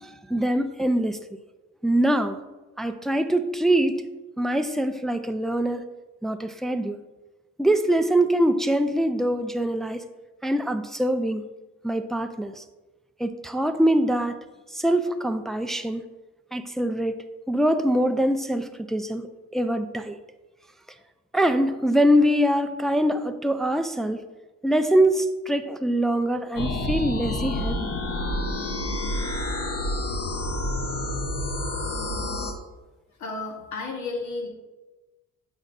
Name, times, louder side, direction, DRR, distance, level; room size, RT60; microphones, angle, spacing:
voice 1, 0.0-1.2 1.8-2.4 2.8-4.0 4.4-5.8 6.2-7.0 7.6-10.0 10.4-11.4 11.8-12.6 13.2-14.4 14.7-16.0 16.5-17.1 17.5-19.3 19.5-20.2 21.3-24.2 24.6-27.9, right 1 dB, ahead, 8 dB, 0.3 m, -23 dB
sound 1, 26.6-32.5, left 1 dB, 55° left, 0.9 m, -28 dB
voice 2, 33.2-34.5, left 3 dB, 75° left, 1 dB, 1.4 m, -32 dB
7.5 x 5.3 x 2.5 m, 1.1 s
cardioid pair, 90°, 30 cm